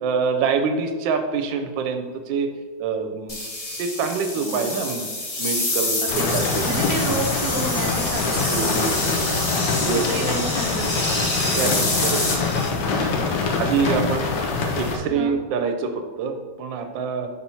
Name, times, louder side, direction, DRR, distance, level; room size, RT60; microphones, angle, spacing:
voice 1, 0.0-2.5 2.8-3.4 3.8-5.1 5.4-6.6 8.2-9.2 9.7-10.1 11.6-12.2 12.8-13.1 13.5-14.3 14.7-17.3, right 5 dB, 85° right, 7 dB, 1.3 m, -26 dB
sound 1, 3.3-12.7, left 2 dB, 55° left, 0.3 m, -27 dB
voice 2, 4.4-4.8 6.0-11.2 11.5-12.3 13.0-13.6 13.9-14.1 15.0-15.4, right 3 dB, 50° right, 0 dB, 0.7 m, -32 dB
sound 2, 6.1-15.0, left 4 dB, 85° left, 1.5 m, -25 dB
5.4 x 4.2 x 4.4 m, 1.4 s
omnidirectional pair, 2.0 m